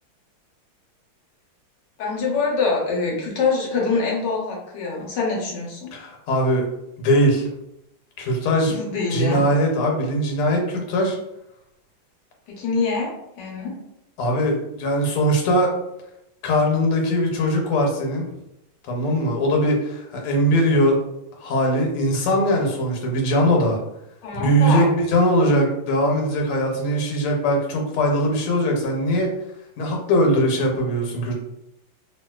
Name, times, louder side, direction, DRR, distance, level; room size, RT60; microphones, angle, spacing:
voice 1, 2.0-5.9 8.7-9.4 12.5-13.8 24.2-24.9, left 4 dB, 65° left, -2 dB, 1.2 m, -24 dB
voice 2, 5.9-6.6 7.0-7.5 8.2-8.8 9.1-11.2 14.2-15.7 16.4-18.2 18.9-21.0 21.4-23.8 24.4-29.3 29.8-31.4, equal, 85° left, 1 dB, 1.7 m, -20 dB
3.0 x 3.0 x 2.2 m, 0.84 s
omnidirectional pair, 2.4 m